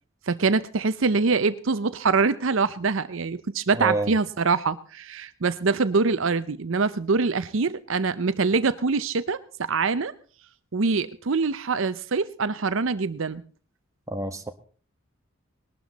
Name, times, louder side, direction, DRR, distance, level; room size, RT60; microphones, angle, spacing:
voice 1, 0.3-9.4 9.7-10.1 10.7-13.4, right 4 dB, 60° right, 14 dB, 0.6 m, -24 dB
voice 2, 3.7-4.1 14.1-14.5, right 2 dB, 15° right, 6 dB, 1.4 m, -28 dB
20.5 x 12.5 x 4.1 m, 0.41 s
head